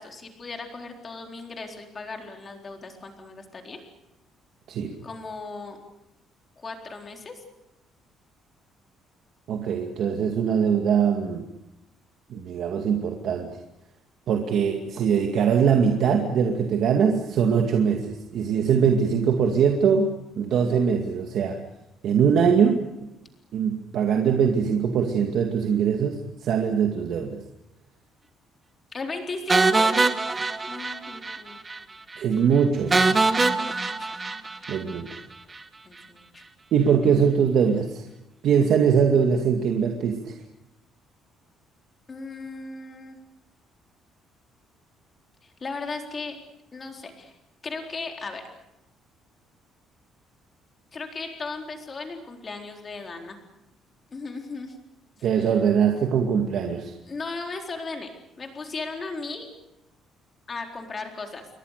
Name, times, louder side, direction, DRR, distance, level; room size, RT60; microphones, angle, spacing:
voice 1, 0.0-3.8 5.0-5.8 6.6-7.4 28.9-29.9 30.6-31.6 33.6-34.1 35.8-36.4 42.1-43.2 45.4-46.4 46.7-47.4 47.6-48.4 50.9-53.4 54.1-54.8 55.2-55.5 57.1-58.1 58.4-59.5 60.5-61.5, left 3 dB, 25° left, 3 dB, 4.0 m, -36 dB
voice 2, 9.5-11.5 12.3-13.5 14.3-21.6 22.0-23.1 23.5-27.4 32.2-33.0 34.7-35.1 36.7-38.0 38.4-40.4 55.2-56.9, right 7 dB, 55° right, 3 dB, 2.3 m, -22 dB
sound 1, 29.5-31.4 31.7-31.8 32.1-32.2 32.9-35.2, right 3 dB, 15° right, 1.3 m, -23 dB
28.5 x 23.5 x 6.7 m, 0.90 s
cardioid pair, 165°, 0 cm